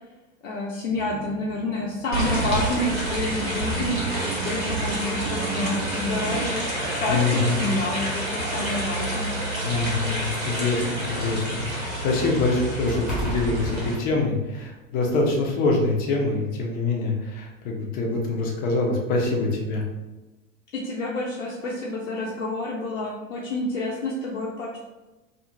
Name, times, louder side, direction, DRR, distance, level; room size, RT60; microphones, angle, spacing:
voice 1, 0.4-4.1 4.4-6.6 6.9-9.3 20.7-24.8, left 2 dB, 75° left, -4 dB, 0.5 m, -29 dB
sound 1, 0.9-6.5, right 6 dB, 45° right, 0.4 m, -36 dB
sound 2, 2.1-13.9, right 1 dB, 85° right, 0.9 m, -28 dB
sound 3, 6.1-6.2 7.3-7.4 7.8-8.0 8.9-10.9 11.3-14.7 15.1-15.2, equal, 5° right, 0.8 m, -37 dB
voice 2, 7.1-7.7 9.6-19.8, left 3 dB, 25° left, 0 dB, 0.4 m, -25 dB
2.4 x 2.4 x 2.8 m, 1.1 s
figure-of-eight pair, 85°, 40 cm